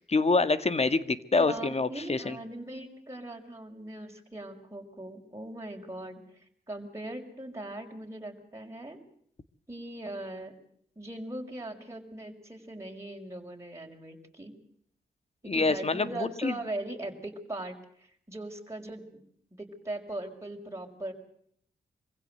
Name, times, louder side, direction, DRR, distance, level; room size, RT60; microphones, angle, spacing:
voice 1, 0.0-2.4 15.5-16.6, left 3 dB, 40° left, 13 dB, 1.9 m, -26 dB
voice 2, 1.4-6.2 6.7-9.0 9.7-10.5 11.0-14.5 15.4-19.0 19.5-21.1, right 1 dB, 15° right, 0 dB, 5.9 m, -40 dB
25.0 x 16.0 x 7.9 m, 0.66 s
supercardioid pair, 45°, 17 cm